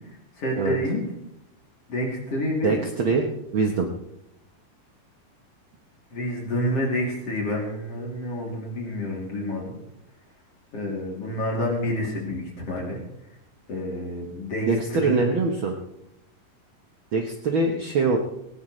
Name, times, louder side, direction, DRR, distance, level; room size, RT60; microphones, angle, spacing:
voice 1, 0.4-1.0 1.9-2.8 6.1-9.7 10.7-13.0 13.7-15.2, left 1 dB, 45° left, -2 dB, 3.8 m, -28 dB
voice 2, 2.6-3.9 14.7-15.7 17.1-18.2, right 4 dB, 65° right, 2 dB, 1.2 m, -23 dB
19.0 x 17.0 x 3.2 m, 0.79 s
omnidirectional pair, 4.1 m